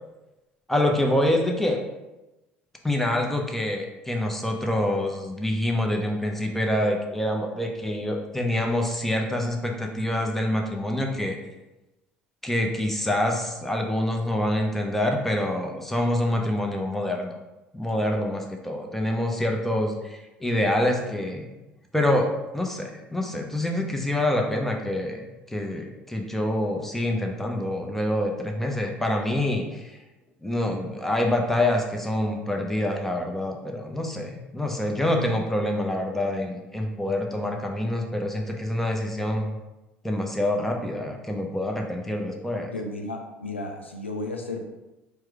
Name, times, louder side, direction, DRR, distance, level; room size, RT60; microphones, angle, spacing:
voice 1, 0.7-1.8 2.8-11.4 12.4-17.3 17.7-21.5 21.9-22.3 22.5-30.0 30.4-39.6 40.0-42.7, left 1 dB, 5° left, 1 dB, 0.8 m, -26 dB
voice 2, 42.7-44.6, left 2 dB, 90° left, 3 dB, 0.4 m, -33 dB
4.6 x 2.2 x 4.7 m, 1.0 s
figure-of-eight pair, 65°, 6 cm